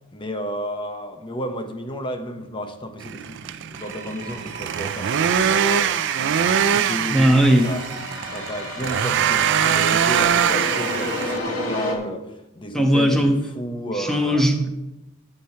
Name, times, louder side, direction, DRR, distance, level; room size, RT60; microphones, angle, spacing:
voice 1, 0.1-6.0 6.7-7.8 8.3-14.5, equal, 25° left, 6 dB, 1.0 m, -32 dB
sound 1, 3.0-11.4, right 8 dB, 55° right, 0.4 m, -23 dB
sound 2, 3.7-11.9, left 2 dB, 75° left, 1.9 m, -32 dB
voice 2, 7.1-7.7 12.7-13.4 14.0-14.7, equal, ahead, 3 dB, 1.2 m, -18 dB
12.0 x 7.8 x 4.4 m, 0.95 s
head